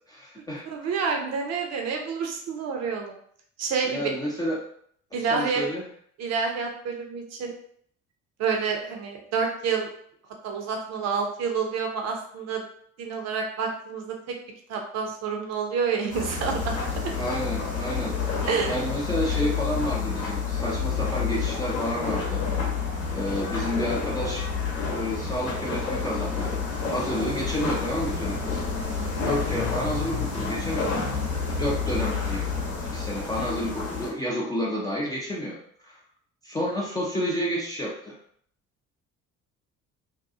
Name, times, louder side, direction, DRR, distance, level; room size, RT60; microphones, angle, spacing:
voice 1, 0.1-0.6 3.8-4.6 5.3-5.9 17.1-22.4 23.1-24.5 24.9-26.6 26.8-28.6 29.2-31.0 31.5-32.4 32.9-35.6 35.8-35.9 36.4-38.2, equal, 10° left, -5 dB, 0.4 m, -30 dB
voice 2, 0.7-3.1 3.6-4.1 5.1-5.6 6.2-7.5 8.4-9.9 10.4-12.6 13.0-14.2 14.7-16.8 18.5-18.7, right 5 dB, 40° right, 2 dB, 0.6 m, -28 dB
sound 1, 16.1-34.1, left 5 dB, 70° left, 1.0 m, -29 dB
2.7 x 2.3 x 2.4 m, 0.64 s
figure-of-eight pair, 50°, 42 cm